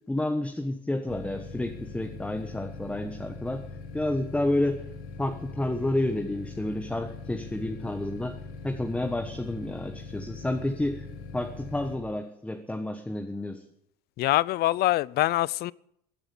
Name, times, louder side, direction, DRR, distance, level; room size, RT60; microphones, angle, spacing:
voice 1, 0.1-3.7 3.9-4.9 5.2-11.0 11.3-13.6, left 1 dB, 5° left, 1.3 m, -30 dB
sound 1, 1.1-12.0, left 4 dB, 70° left, 4.8 m, -41 dB
voice 2, 14.2-15.7, left 16 dB, 50° left, 0.5 m, -24 dB
16.5 x 9.0 x 8.5 m
supercardioid pair, 115°, 21 cm